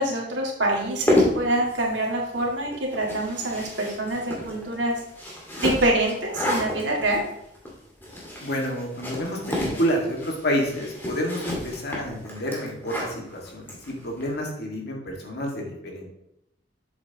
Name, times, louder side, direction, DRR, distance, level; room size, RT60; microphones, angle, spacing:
voice 1, 0.0-4.9 5.6-7.2, right 1 dB, 80° right, -1 dB, 2.0 m, -25 dB
sound 1, 0.8-14.3, left 1 dB, 10° left, 1.8 m, -30 dB
voice 2, 8.4-16.1, equal, 60° left, 0 dB, 1.8 m, -29 dB
7.7 x 7.4 x 2.9 m, 0.79 s
head